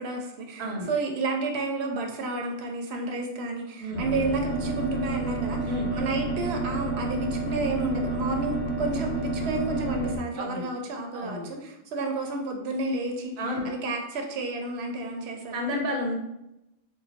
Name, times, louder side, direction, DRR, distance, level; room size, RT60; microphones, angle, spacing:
voice 1, 0.0-13.3 13.6-15.6, right 2 dB, 90° right, 3 dB, 0.8 m, -31 dB
sound 1, 3.9-10.2, right 2 dB, 50° left, 1.0 m, -30 dB
voice 2, 10.4-10.7 11.1-11.5 13.4-13.7 15.5-16.1, left 1 dB, 45° right, 0 dB, 0.7 m, -30 dB
3.0 x 2.1 x 4.0 m, 0.88 s
omnidirectional pair, 1.1 m